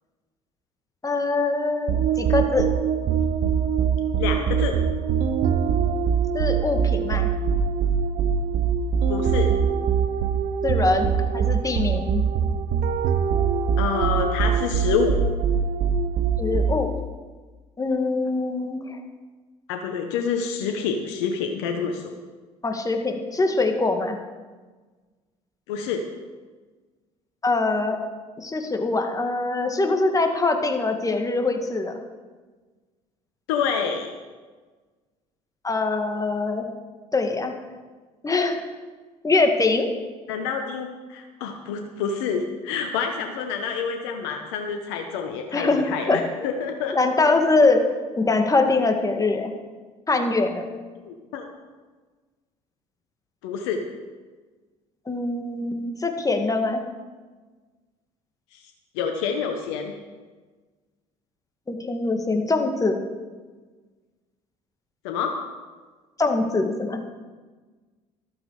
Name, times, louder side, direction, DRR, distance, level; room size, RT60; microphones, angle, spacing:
voice 1, 1.0-2.7 6.3-7.3 10.6-12.2 16.4-16.9 17.8-19.0 22.6-24.2 27.4-28.0 28.4-32.0 35.6-36.7 37.1-37.5 38.2-38.6 39.2-39.9 45.5-46.2 46.9-49.5 50.1-50.7 55.1-56.8 61.7-63.0 66.2-67.0, left 3 dB, 20° left, 5 dB, 2.2 m, -23 dB
sound 1, 1.9-17.0, right 7 dB, 60° right, 1.0 m, -23 dB
voice 2, 4.2-4.8 9.1-9.5 13.8-15.2 19.7-22.1 25.7-26.1 33.5-34.1 40.3-47.0 51.0-51.5 53.4-53.9 58.5-58.6 58.9-59.9 65.0-65.4, left 6 dB, 80° left, 4 dB, 1.2 m, -27 dB
14.0 x 12.5 x 4.9 m, 1.4 s
hypercardioid pair, 65°, 15 cm